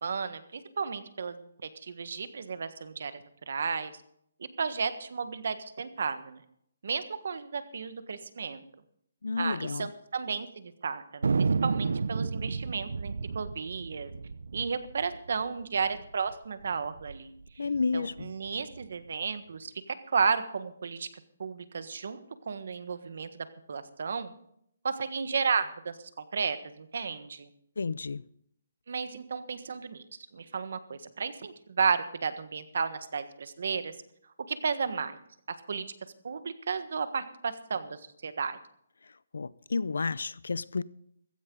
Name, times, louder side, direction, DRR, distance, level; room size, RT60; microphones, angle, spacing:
voice 1, 0.0-3.9 4.4-6.4 6.8-8.6 9.4-11.3 11.6-14.1 14.5-17.3 17.6-17.7 17.9-21.1 21.4-24.3 24.8-27.5 28.9-30.0 30.3-33.9 34.5-35.2 35.7-35.8 36.2-38.6, right 5 dB, 60° right, 11 dB, 1.5 m, -33 dB
voice 2, 9.2-9.9 17.6-18.3 27.8-28.2 39.3-40.8, left 4 dB, 85° left, 20 dB, 0.6 m, -31 dB
Thunder, 11.2-16.1 16.3-16.4 16.6-17.2 17.7-18.8, right 4 dB, 80° right, 0.7 m, -31 dB
15.5 x 15.0 x 3.9 m, 0.70 s
hypercardioid pair, 170°, 0 cm